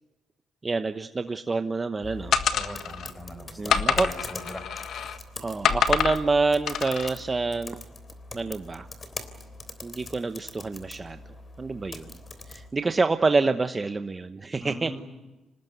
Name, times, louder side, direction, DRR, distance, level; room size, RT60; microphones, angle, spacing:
voice 1, 0.6-2.3 3.6-4.1 5.4-7.8 8.3-8.9 9.8-11.2 11.6-12.1 12.5-15.0, right 3 dB, 25° right, 8 dB, 1.0 m, -27 dB
sound 1, 2.0-12.7, left 3 dB, 35° left, 3.3 m, -43 dB
sound 2, 2.3-3.1 3.7-5.2 5.6-6.2 6.7-7.1, left 7 dB, 70° left, 1.6 m, -26 dB
voice 2, 2.5-4.6 14.6-15.0, equal, 10° left, 6 dB, 6.7 m, -40 dB
26.5 x 19.5 x 9.4 m, 1.1 s
cardioid pair, 90°, 0 cm